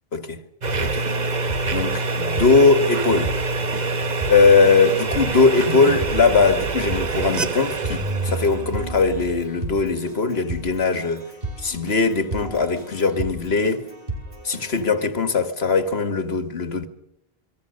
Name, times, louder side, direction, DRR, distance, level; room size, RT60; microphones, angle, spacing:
sound 1, 0.6-9.8, right 3 dB, 45° right, 1.1 m, -26 dB
Keyboard (musical), 0.7-15.0, right 2 dB, 65° right, 6.1 m, -35 dB
voice 1, 1.7-3.3 4.3-11.2 11.6-13.9 14.4-16.9, left 4 dB, 90° left, 2.0 m, -20 dB
28.0 x 21.0 x 6.5 m
omnidirectional pair, 1.0 m